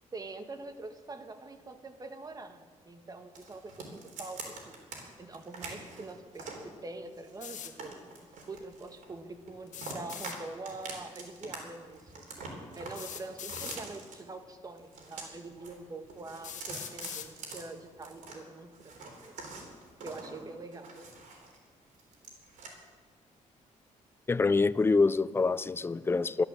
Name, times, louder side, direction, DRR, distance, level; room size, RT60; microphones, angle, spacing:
voice 1, 0.1-4.8 5.2-8.0 8.5-12.2 12.7-19.3 20.0-21.1, right 3 dB, 30° right, 1.3 m, -44 dB
sound 1, 3.3-5.0 5.3-6.7 7.2-9.2 9.5-10.4 10.6-11.6 11.8-14.1 14.8-15.7 16.0-18.4 18.7-21.6 21.9-22.7, right 4 dB, 75° right, 3.6 m, -45 dB
sound 2, 7.4-7.7 9.7-10.4 11.8-11.9 12.9-13.8 14.8-14.9 15.6-15.7 16.4-17.3, left 9 dB, 70° left, 1.3 m, -42 dB
voice 2, 24.3-26.4, left 4 dB, 20° left, 0.4 m, -26 dB
14.0 x 12.0 x 7.5 m
cardioid pair, 110°, 13 cm